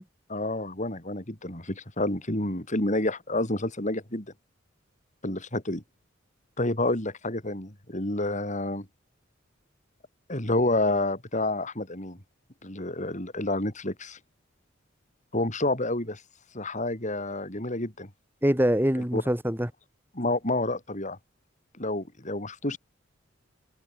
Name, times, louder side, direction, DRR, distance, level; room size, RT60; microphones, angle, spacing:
voice 1, 0.3-4.3 5.2-5.8 6.6-8.9 10.3-12.2 12.6-14.2 15.3-16.2 16.5-18.1 19.1-19.2 20.1-21.2 21.8-22.8, left 2 dB, 40° left, 5.3 m, -29 dB
voice 2, 18.4-19.7, equal, 10° right, 3.1 m, -24 dB
head